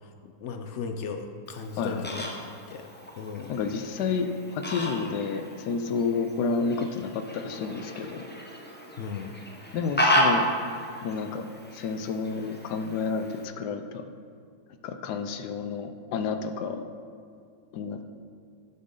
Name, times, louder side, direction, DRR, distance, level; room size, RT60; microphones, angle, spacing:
voice 1, 0.2-2.9 3.2-3.5 9.0-9.3, left 5 dB, 70° left, 6 dB, 0.7 m, -36 dB
Fowl, 1.5-13.5, equal, 15° left, 0.4 m, -32 dB
voice 2, 1.8-2.2 3.5-8.3 9.7-10.5 11.0-11.5 11.7-14.0 14.8-16.8 17.7-18.0, left 5 dB, 85° left, 8 dB, 1.2 m, -30 dB
9.5 x 7.8 x 3.8 m, 2.3 s
omnidirectional pair, 1.7 m